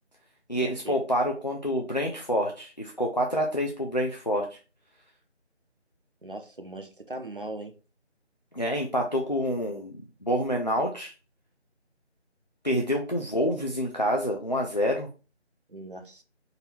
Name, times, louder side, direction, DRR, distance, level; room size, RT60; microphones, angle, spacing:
voice 1, 0.5-4.6 8.5-9.9 10.2-11.1 12.6-15.1, equal, 40° left, 0.6 m, -27 dB
voice 2, 6.2-7.7 15.7-16.2, right 2 dB, 50° right, 0.7 m, -39 dB
4.0 x 2.7 x 4.2 m
figure-of-eight pair, 170°, 35 cm